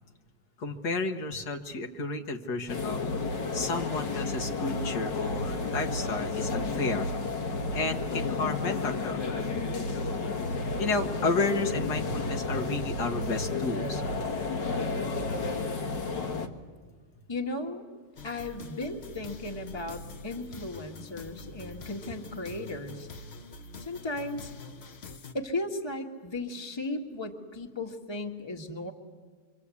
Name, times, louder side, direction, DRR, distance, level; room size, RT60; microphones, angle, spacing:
voice 1, 0.6-3.0 3.5-7.1 7.7-9.2 10.8-14.0, left 3 dB, 65° left, 4 dB, 1.7 m, -31 dB
sound 1, 2.7-16.5, left 3 dB, 80° left, 2.2 m, -31 dB
voice 2, 17.3-17.8 18.2-23.1 23.8-24.5 25.3-28.9, left 2 dB, 15° left, 2 dB, 1.6 m, -36 dB
sound 2, 18.2-25.3, left 3 dB, 45° left, 1.0 m, -45 dB
27.0 x 24.5 x 8.4 m, 1.5 s
omnidirectional pair, 1.9 m